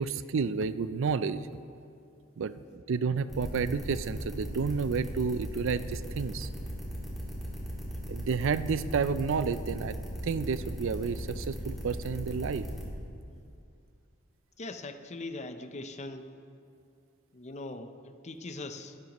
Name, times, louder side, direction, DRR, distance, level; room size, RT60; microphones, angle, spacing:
voice 1, 0.0-1.5 2.4-6.5 8.1-10.0 10.2-12.7, right 5 dB, 65° right, 14 dB, 0.4 m, -30 dB
sound 1, 3.3-12.8, right 1 dB, ahead, 3.0 m, -38 dB
voice 2, 14.6-16.3 17.3-19.0, left 2 dB, 35° left, 8 dB, 0.7 m, -41 dB
21.0 x 12.0 x 3.0 m, 2.5 s
head